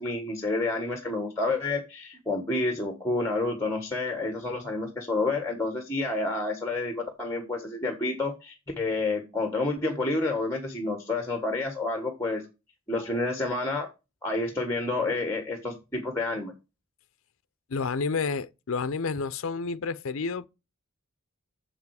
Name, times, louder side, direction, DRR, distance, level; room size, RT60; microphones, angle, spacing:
voice 1, 0.0-12.4 12.9-13.9 14.2-16.5, left 2 dB, 10° left, 1.4 m, -29 dB
voice 2, 17.7-20.5, left 4 dB, 65° left, 0.5 m, -30 dB
7.5 x 7.2 x 4.8 m
head